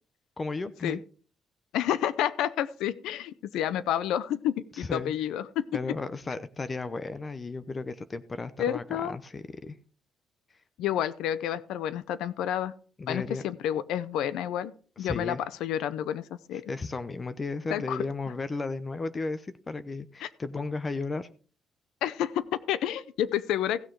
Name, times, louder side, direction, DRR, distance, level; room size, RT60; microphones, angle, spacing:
voice 1, 0.4-1.0 4.7-5.1 5.7-9.8 13.0-13.4 15.0-15.4 16.7-21.3, left 3 dB, 30° left, 13 dB, 0.8 m, -34 dB
voice 2, 1.7-5.6 8.6-9.1 10.8-12.7 13.1-14.7 15.0-16.6 17.7-18.0 20.2-20.3 22.0-23.8, left 10 dB, 90° left, 17 dB, 0.7 m, -30 dB
16.0 x 6.4 x 4.6 m, 0.41 s
cardioid pair, 90°, 0 cm